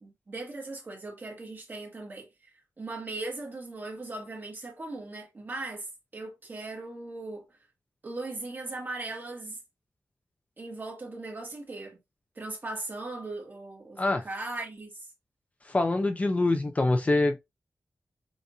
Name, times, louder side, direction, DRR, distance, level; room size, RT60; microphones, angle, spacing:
voice 1, 0.0-2.3 2.8-5.9 6.1-7.4 8.0-9.6 10.6-12.0 12.3-15.1, right 2 dB, 35° right, 1.6 m, -38 dB
voice 2, 15.7-17.4, left 2 dB, 25° left, 0.5 m, -25 dB
7.0 x 2.5 x 2.6 m
wide cardioid pair, 165°, 6 cm